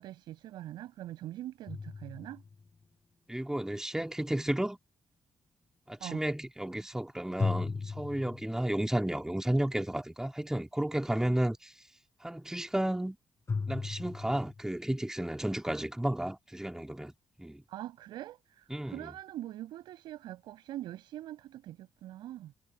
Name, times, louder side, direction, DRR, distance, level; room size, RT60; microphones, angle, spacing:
voice 1, 0.0-2.4 6.0-6.2 17.7-22.5, right 13 dB, 85° right, 5.6 m, -43 dB
sound 1, 1.7-2.8 7.4-8.9 13.5-14.6, left 4 dB, 40° left, 3.8 m, -36 dB
voice 2, 3.3-4.8 5.9-11.7 12.2-13.2 13.7-17.1 17.4-17.6 18.7-19.0, right 1 dB, 5° right, 2.2 m, -32 dB
supercardioid pair, 60°, 8 cm